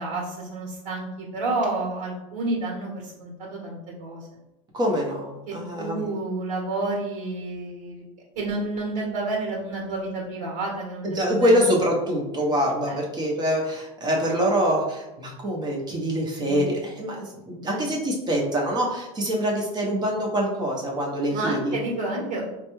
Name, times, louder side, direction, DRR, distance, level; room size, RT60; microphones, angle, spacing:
voice 1, 0.0-4.3 5.5-8.0 8.3-11.6 12.9-13.0 16.4-16.6 17.6-17.8 21.3-22.4, right 2 dB, 60° right, -2 dB, 1.3 m, -30 dB
voice 2, 4.7-6.1 11.0-21.8, equal, 25° right, -1 dB, 0.9 m, -25 dB
3.8 x 2.3 x 3.1 m, 0.94 s
supercardioid pair, 105°, 17 cm